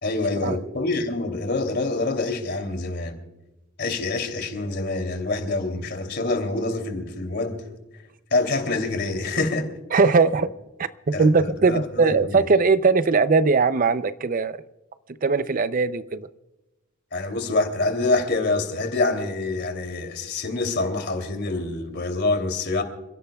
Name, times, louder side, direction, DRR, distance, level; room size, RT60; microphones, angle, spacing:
voice 1, 0.0-3.2 3.8-7.7 8.3-9.7 11.1-12.4 17.1-22.8, left 3 dB, 55° left, 2.9 m, -26 dB
voice 2, 9.9-10.5 11.1-14.6 15.2-16.3, right 4 dB, 45° right, 0.6 m, -20 dB
28.5 x 16.5 x 2.3 m
head